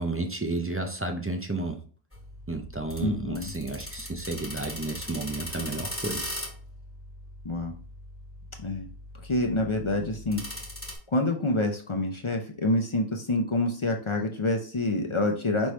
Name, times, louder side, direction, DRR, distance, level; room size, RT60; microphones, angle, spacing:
voice 1, 0.0-1.8 2.5-6.3, right 2 dB, 20° right, 4 dB, 0.3 m, -32 dB
sound 1, 2.1-11.0, left 1 dB, 15° left, 1.2 m, -40 dB
voice 2, 3.0-3.5 7.4-7.8 8.6-8.9 9.2-10.4 11.1-15.7, left 2 dB, 35° left, 3 dB, 0.6 m, -27 dB
5.3 x 3.1 x 3.1 m, 0.42 s
omnidirectional pair, 1.1 m